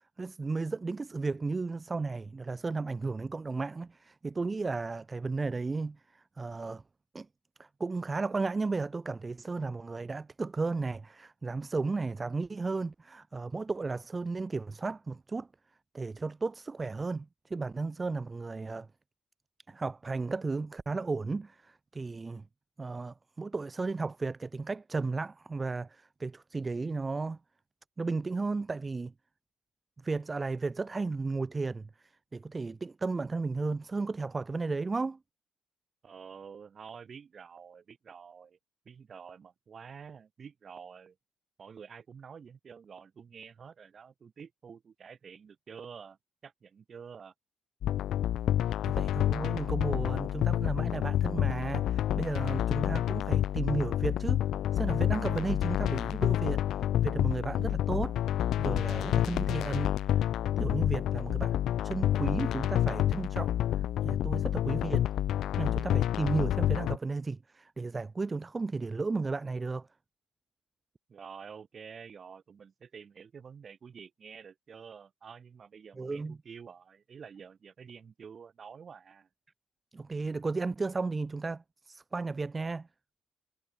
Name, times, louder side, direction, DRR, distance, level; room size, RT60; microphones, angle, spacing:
voice 1, 0.2-6.8 7.1-7.3 7.6-15.5 15.9-18.9 19.7-22.4 22.8-27.4 28.0-29.1 30.0-35.2 48.7-54.4 54.7-58.2 58.6-60.3 60.6-61.6 61.8-65.1 65.6-69.9 76.0-76.4 79.9-82.9, right 3 dB, 25° right, 0.3 m, -34 dB
voice 2, 36.0-38.6 38.9-41.2 41.6-46.2 46.4-47.3 71.1-79.3, right 6 dB, 45° right, 7.2 m, -49 dB
sound 1, 47.8-67.0, left 12 dB, 75° left, 0.3 m, -29 dB
cardioid pair, 90°, 0 cm